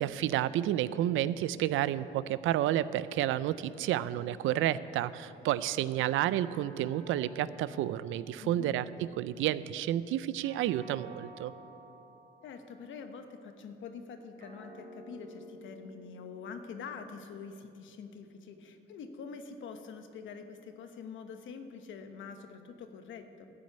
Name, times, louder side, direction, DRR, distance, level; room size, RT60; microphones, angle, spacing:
voice 1, 0.0-8.8 9.2-11.5, right 12 dB, 85° right, 16 dB, 0.4 m, -30 dB
sound 1, 6.4-9.0 10.4-13.0 14.4-17.0, equal, 45° right, 3.1 m, -52 dB
voice 2, 8.4-8.7 12.4-23.5, left 5 dB, 75° left, 7 dB, 1.1 m, -45 dB
13.0 x 6.3 x 8.6 m, 2.8 s
cardioid pair, 90°, 20 cm